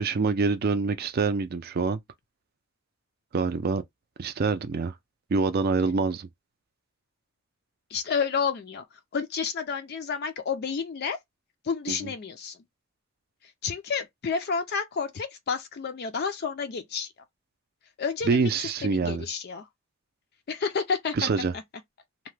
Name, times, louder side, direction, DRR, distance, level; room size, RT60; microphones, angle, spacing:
voice 1, 0.0-2.0 3.3-3.8 4.2-4.9 5.3-6.3 11.9-12.1 18.2-19.2 21.1-21.5, right 4 dB, 45° right, 0.4 m, -26 dB
voice 2, 7.9-8.8 9.1-11.2 11.6-12.6 13.6-17.1 18.0-18.5 18.8-19.6 20.5-21.3, left 5 dB, 45° left, 0.4 m, -30 dB
2.8 x 2.2 x 3.1 m
head